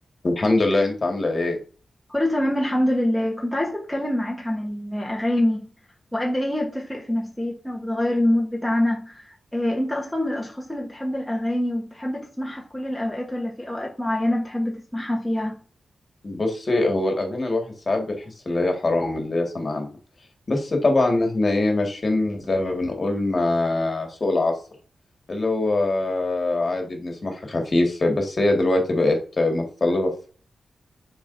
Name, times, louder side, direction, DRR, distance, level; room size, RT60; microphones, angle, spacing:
voice 1, 0.2-1.6 16.2-19.9 20.5-24.5 25.3-30.3, left 2 dB, 35° left, 1.9 m, -23 dB
voice 2, 2.1-5.7 6.1-15.6, left 1 dB, 5° left, 1.2 m, -25 dB
7.2 x 5.1 x 2.7 m
wide cardioid pair, 105°, 0 cm